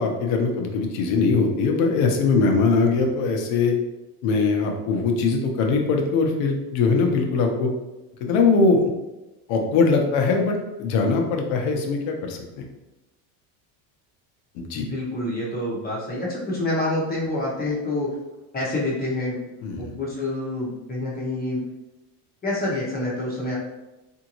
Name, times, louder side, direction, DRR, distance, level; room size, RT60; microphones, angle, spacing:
voice 1, 0.0-3.7 4.2-7.7 8.2-8.9 9.5-12.6 14.5-14.9 19.6-19.9, left 4 dB, 65° left, 3 dB, 0.8 m, -21 dB
voice 2, 14.7-18.1 18.5-19.4 19.8-21.6 22.4-23.6, left 1 dB, 20° left, -5 dB, 0.8 m, -27 dB
3.6 x 2.7 x 2.9 m, 1.0 s
supercardioid pair, 135°, 49 cm